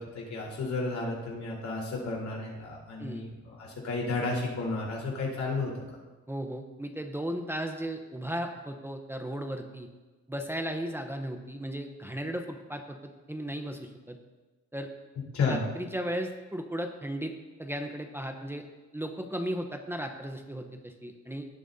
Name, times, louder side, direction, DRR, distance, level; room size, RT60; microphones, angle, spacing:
voice 1, 0.0-5.7 15.3-15.6, left 3 dB, 65° left, -4 dB, 4.1 m, -32 dB
voice 2, 6.3-9.9 10.3-14.2 14.7-14.9 15.5-17.3 17.6-18.6 18.9-21.5, equal, 10° right, 3 dB, 0.9 m, -35 dB
17.5 x 8.7 x 2.8 m, 1.2 s
cardioid pair, 90°, 30 cm